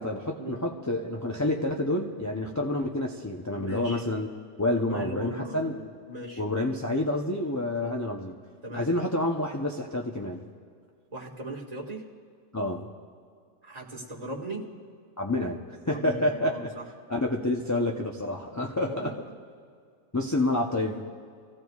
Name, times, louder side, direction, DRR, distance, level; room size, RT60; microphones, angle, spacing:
voice 1, 0.0-4.3 4.6-5.7 6.4-8.3 8.7-10.5 12.5-12.9 15.2-15.6 15.9-16.7 17.1-19.2 20.1-21.0, left 1 dB, 20° left, -1 dB, 0.6 m, -28 dB
voice 2, 3.5-4.0 4.8-6.4 7.8-8.0 8.6-8.9 11.1-12.1 13.6-14.6 15.9-16.8 18.8-19.2, right 1 dB, 30° right, -3 dB, 1.9 m, -38 dB
28.5 x 16.0 x 2.4 m, 2.2 s
omnidirectional pair, 1.3 m